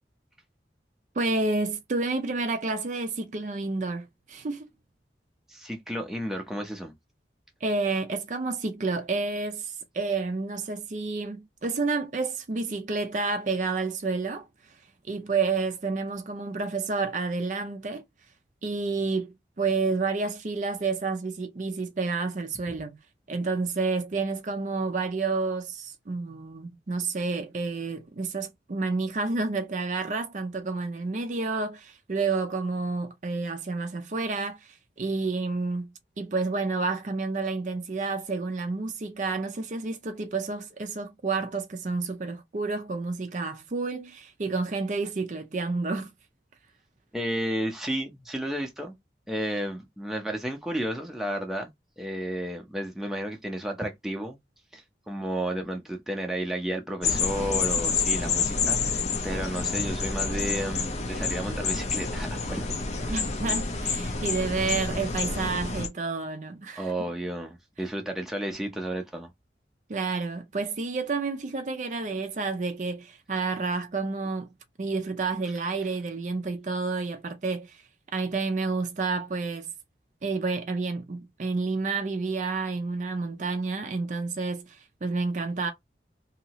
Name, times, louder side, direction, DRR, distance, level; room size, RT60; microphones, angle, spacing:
voice 1, 1.1-4.7 7.6-14.5 15.0-18.0 18.6-23.0 23.3-35.9 36.2-46.1 63.1-66.9 69.9-74.5 74.8-77.8 78.1-79.7 80.2-85.7, right 3 dB, 45° right, 0.4 m, -30 dB
voice 2, 5.5-6.9 47.1-48.9 49.3-51.7 52.0-54.4 54.7-62.6 63.0-63.1 66.8-69.3, right 1 dB, ahead, 0.6 m, -32 dB
sound 1, 57.0-65.9, left 4 dB, 40° left, 0.6 m, -28 dB
2.8 x 2.6 x 2.9 m
head